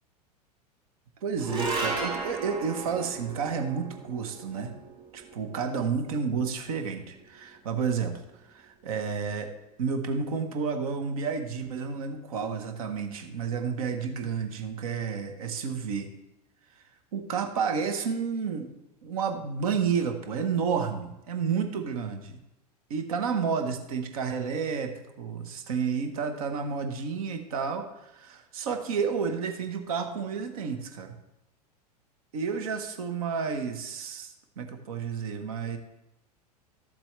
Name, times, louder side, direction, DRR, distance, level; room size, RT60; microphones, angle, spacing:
voice 1, 1.2-4.8 5.1-9.5 9.8-16.1 16.7-16.8 17.1-18.7 19.0-22.4 22.9-31.1 32.3-35.8, right 6 dB, 60° right, 6 dB, 1.1 m, -31 dB
sound 1, 1.4-7.9, right 3 dB, 25° right, 3.0 m, -36 dB
13.0 x 7.4 x 3.2 m, 0.90 s
figure-of-eight pair, 85°, 21 cm